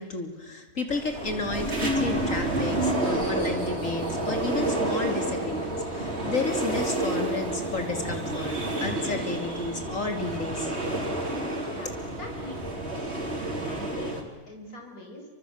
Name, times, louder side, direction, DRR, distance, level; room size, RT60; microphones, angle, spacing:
voice 1, 0.0-10.7, left 3 dB, 60° left, 5 dB, 3.5 m, -32 dB
sound 1, 0.9-14.2, right 1 dB, 45° right, 4.3 m, -29 dB
voice 2, 11.7-13.1 13.7-14.2 14.5-15.3, left 1 dB, 75° left, 2 dB, 6.7 m, -43 dB
28.0 x 25.5 x 8.0 m, 1.3 s
omnidirectional pair, 1.6 m